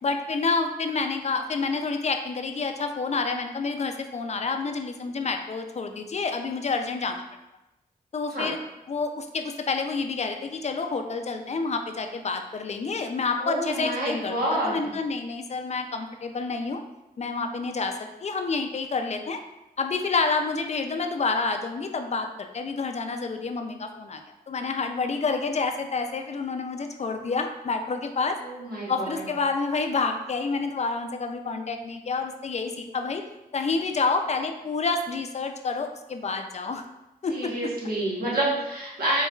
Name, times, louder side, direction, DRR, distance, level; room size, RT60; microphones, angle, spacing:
voice 1, 0.0-7.2 8.1-8.6 8.9-16.8 17.2-19.4 19.8-28.4 28.9-33.2 33.5-36.8 37.2-37.5, left 4 dB, 45° left, 6 dB, 0.4 m, -28 dB
voice 2, 13.4-14.9 28.4-29.2 37.3-39.3, right 1 dB, 75° right, -5 dB, 1.1 m, -28 dB
4.3 x 2.2 x 2.3 m, 0.96 s
cardioid pair, 45°, 16 cm